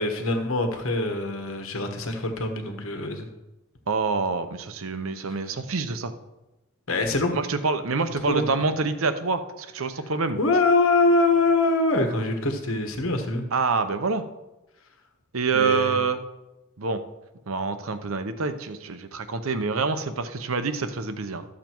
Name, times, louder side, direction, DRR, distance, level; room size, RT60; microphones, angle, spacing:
voice 1, 0.0-3.3 5.3-5.4 6.9-7.4 8.3-8.6 10.4-13.5 15.5-16.0, left 2 dB, 70° left, 5 dB, 1.4 m, -24 dB
voice 2, 3.9-6.1 7.3-10.4 13.5-14.2 15.3-16.2 16.8-17.0 17.5-21.5, right 4 dB, 70° right, 10 dB, 0.8 m, -26 dB
13.0 x 7.4 x 4.5 m, 1.0 s
head